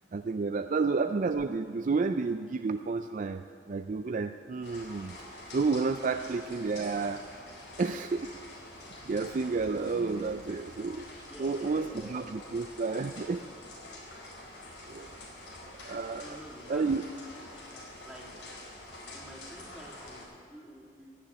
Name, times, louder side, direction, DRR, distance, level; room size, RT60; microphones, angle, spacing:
voice 1, 0.1-7.2 7.8-8.3 8.8-11.1 11.4-13.4 14.9-15.1 15.8-16.4 16.7-17.0, right 4 dB, 45° right, 8 dB, 0.4 m, -31 dB
sound 1, 4.6-20.2, left 1 dB, 85° left, 4.6 m, -47 dB
voice 2, 6.1-6.6 11.3-12.5 16.2-16.9 17.5-18.3 19.1-21.2, equal, 5° right, -5 dB, 2.7 m, -49 dB
16.5 x 7.0 x 9.8 m, 2.1 s
head